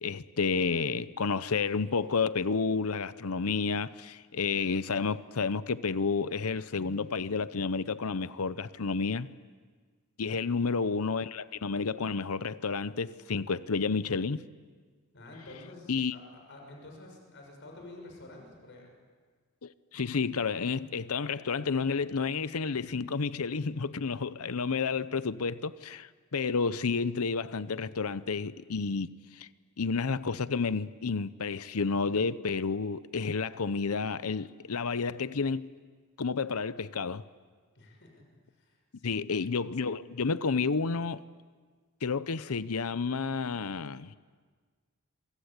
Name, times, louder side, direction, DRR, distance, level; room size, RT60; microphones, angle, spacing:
voice 1, 0.0-9.3 10.2-14.4 15.9-16.1 19.6-29.5 29.8-35.7 36.2-37.2 39.0-41.2 42.0-44.1, left 4 dB, 80° left, 0.8 m, -30 dB
voice 2, 15.1-18.9 37.7-38.2 38.6-39.3, left 2 dB, 55° left, 6.3 m, -49 dB
27.0 x 24.5 x 8.3 m
head